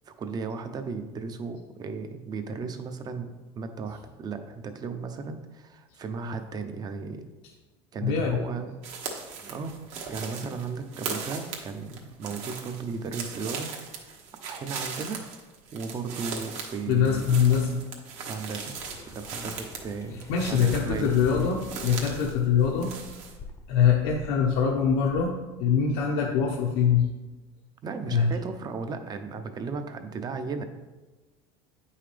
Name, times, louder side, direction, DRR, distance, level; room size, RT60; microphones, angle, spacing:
voice 1, 0.1-7.2 7.9-8.8 9.4-9.7 10.1-13.7 14.0-14.2 14.5-15.2 15.7-17.3 18.3-18.7 19.1-21.2 27.8-30.6, right 4 dB, 30° right, 7 dB, 0.7 m, -35 dB
voice 2, 8.0-8.4 16.9-17.7 20.3-22.9 23.7-25.3 25.6-27.1 28.1-28.3, left 7 dB, 75° left, -1 dB, 0.9 m, -23 dB
sound 1, 8.8-22.3 22.6-23.4, right 5 dB, 60° right, 1.3 m, -39 dB
sound 2, 18.7-25.2, left 4 dB, 20° left, 0.7 m, -44 dB
8.6 x 5.6 x 3.4 m, 1.2 s
cardioid pair, 130°, 13 cm